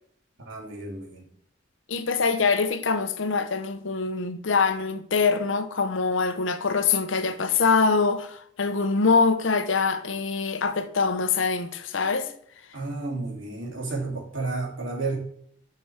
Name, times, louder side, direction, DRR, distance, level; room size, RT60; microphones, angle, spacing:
voice 1, 0.4-1.2 12.7-15.2, right 3 dB, 80° right, 2.6 m, -32 dB
voice 2, 1.9-12.3, left 4 dB, 80° left, 0.8 m, -24 dB
7.1 x 6.1 x 3.4 m
head